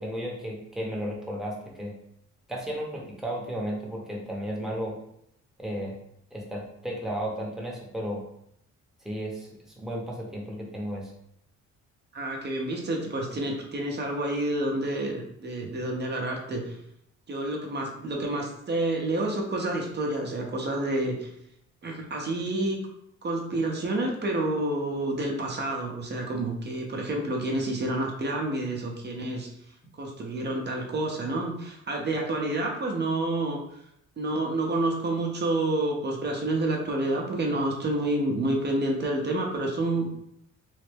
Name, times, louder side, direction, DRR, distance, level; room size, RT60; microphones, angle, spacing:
voice 1, 0.0-1.9 2.5-4.9 5.6-5.9 6.3-8.2 9.0-11.1, equal, ahead, -2 dB, 0.8 m, -34 dB
voice 2, 12.1-16.8 17.3-21.3 21.8-22.8 23.2-29.5 29.9-33.6 34.2-40.2, right 2 dB, 35° right, 1 dB, 0.7 m, -29 dB
3.1 x 2.1 x 3.3 m, 0.74 s
cardioid pair, 90°, 30 cm